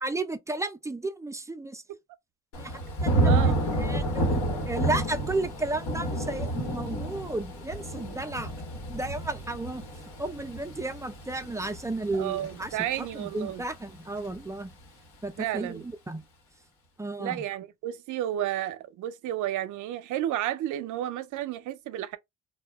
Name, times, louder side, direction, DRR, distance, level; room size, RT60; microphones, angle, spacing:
voice 1, 0.0-1.8 2.6-3.5 3.8-8.5 8.9-9.9 10.2-14.7 15.2-16.2 17.0-17.4, right 2 dB, 10° right, 0.3 m, -33 dB
Thunder / Rain, 2.5-13.5 13.9-14.3, right 1 dB, 85° left, 1.2 m, -30 dB
voice 2, 3.0-3.7 12.1-13.6 15.4-15.8 17.2-22.2, right 12 dB, 85° right, 0.5 m, -32 dB
2.2 x 2.1 x 3.4 m
cardioid pair, 90°, 30 cm